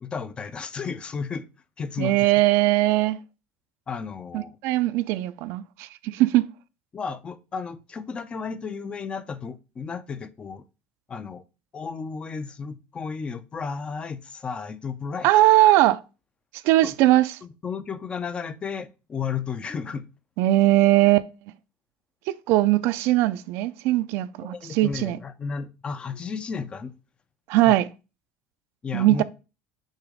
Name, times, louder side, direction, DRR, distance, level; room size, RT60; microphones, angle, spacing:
voice 1, 0.0-1.5 1.8-2.3 3.9-4.6 6.9-10.6 11.1-11.4 11.7-15.4 16.8-16.9 17.4-20.1 24.4-26.9 27.6-27.8 28.8-29.2, left 5 dB, 25° left, 0.5 m, -33 dB
voice 2, 2.0-3.2 4.3-6.4 15.2-16.0 16.6-17.3 20.4-21.3 22.3-25.2 27.5-27.8 28.9-29.2, right 16 dB, 65° right, 0.4 m, -20 dB
6.4 x 3.0 x 5.0 m
cardioid pair, 135°, 5 cm